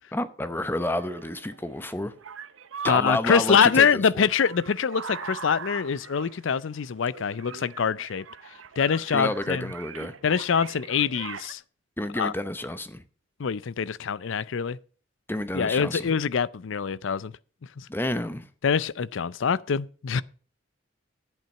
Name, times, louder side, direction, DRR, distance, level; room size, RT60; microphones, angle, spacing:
voice 1, 0.1-2.1 2.8-4.2 9.1-10.1 12.0-13.0 15.3-16.1 17.9-18.5, left 1 dB, 10° left, 0.7 m, -30 dB
sound 1, 0.8-11.5, right 6 dB, 85° right, 0.8 m, -42 dB
voice 2, 2.8-8.2 8.8-9.7 10.2-11.6 12.2-12.3 13.4-14.8 15.5-17.3 17.8-17.9 18.6-20.2, left 6 dB, 75° left, 0.5 m, -24 dB
10.5 x 8.7 x 5.4 m
head